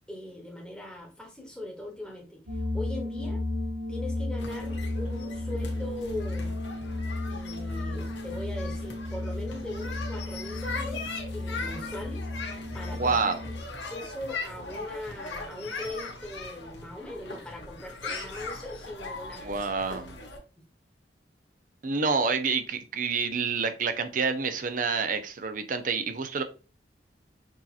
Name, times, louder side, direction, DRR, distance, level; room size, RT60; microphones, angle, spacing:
voice 1, 0.1-3.4 3.9-6.5 7.3-12.3 12.7-13.2 13.8-19.7 20.5-20.6, left 1 dB, 5° left, 0 dB, 1.2 m, -40 dB
sound 1, 2.5-13.6, left 2 dB, 80° right, 1.0 m, -34 dB
sound 2, 4.4-20.4, left 3 dB, 80° left, 1.1 m, -40 dB
voice 2, 12.9-13.4 19.4-20.2 21.8-26.4, right 4 dB, 45° right, 9 dB, 0.6 m, -28 dB
6.1 x 2.8 x 2.4 m, 0.34 s
head